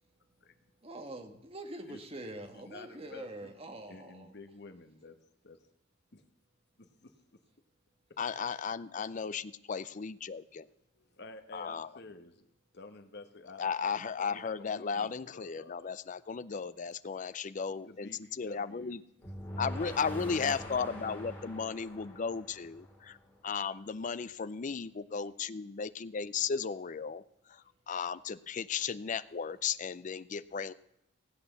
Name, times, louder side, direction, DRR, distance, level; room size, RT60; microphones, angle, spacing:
voice 1, 0.8-4.3, right 1 dB, 30° right, 6 dB, 1.4 m, -44 dB
voice 2, 2.5-3.5 3.9-5.2 5.4-5.6 6.1-6.2 6.8-7.1 11.0-12.5 12.7-16.0 17.9-19.3 21.8-21.9, left 3 dB, 55° left, 7 dB, 1.2 m, -51 dB
voice 3, 8.2-10.7 11.5-11.9 13.6-18.1 18.4-19.0 19.6-23.2 23.4-27.2 27.9-30.7, left 6 dB, 40° left, 15 dB, 0.4 m, -35 dB
sound 1, 19.2-23.3, equal, 10° left, 2.9 m, -43 dB
16.0 x 8.4 x 6.8 m, 0.81 s
head